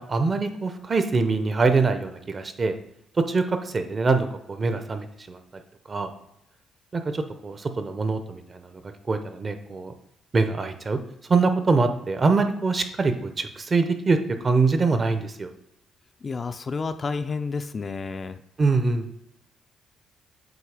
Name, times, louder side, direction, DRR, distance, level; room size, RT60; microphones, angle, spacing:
voice 1, 0.0-2.7 3.1-5.4 5.9-6.1 6.9-8.8 9.1-9.9 10.3-11.0 11.3-15.5 18.6-19.1, right 4 dB, 35° right, 8 dB, 0.7 m, -24 dB
voice 2, 16.2-18.4, left 4 dB, 35° left, 9 dB, 0.4 m, -30 dB
7.9 x 2.8 x 4.9 m, 0.80 s
cardioid pair, 90°, 0 cm